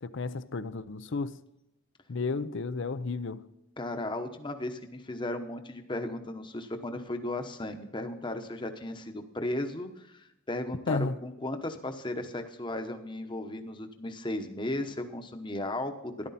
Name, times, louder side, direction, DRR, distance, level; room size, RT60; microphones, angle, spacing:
voice 1, 0.0-1.4 2.1-3.4 10.9-11.1, left 3 dB, 60° left, 0.6 m, -32 dB
voice 2, 3.8-16.3, left 1 dB, 25° left, 1.0 m, -35 dB
13.5 x 11.5 x 4.2 m
head